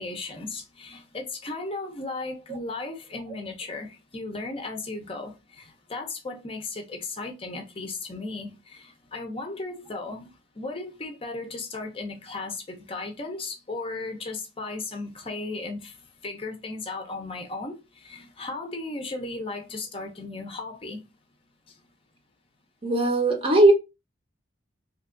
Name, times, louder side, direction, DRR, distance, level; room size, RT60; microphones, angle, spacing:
voice 1, 0.0-10.3 10.6-15.9 16.2-21.0, left 3 dB, 30° left, 0.6 m, -36 dB
voice 2, 22.8-23.7, right 2 dB, 30° right, 0.7 m, -18 dB
2.9 x 2.4 x 3.6 m
head